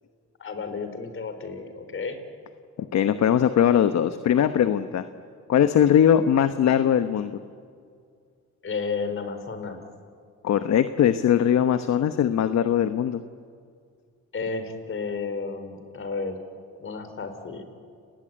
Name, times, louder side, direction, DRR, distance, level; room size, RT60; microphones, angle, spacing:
voice 1, 0.4-2.2 8.6-9.8 14.3-16.4 16.8-17.6, left 4 dB, 45° left, 8 dB, 4.2 m, -32 dB
voice 2, 2.8-5.0 5.5-7.4 10.4-13.2, left 9 dB, 60° left, 10 dB, 1.1 m, -21 dB
29.5 x 19.5 x 9.0 m, 2.2 s
cardioid pair, 90°, 30 cm